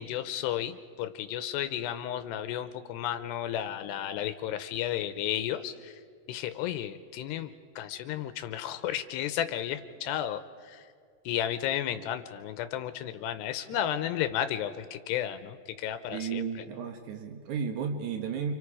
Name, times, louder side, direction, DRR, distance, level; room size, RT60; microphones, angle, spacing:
voice 1, 0.0-5.9 6.3-10.8 11.3-16.4, left 11 dB, 80° left, 10 dB, 2.6 m, -33 dB
voice 2, 16.1-18.5, right 6 dB, 85° right, 5 dB, 1.7 m, -34 dB
30.0 x 27.0 x 4.9 m, 2.2 s
omnidirectional pair, 5.3 m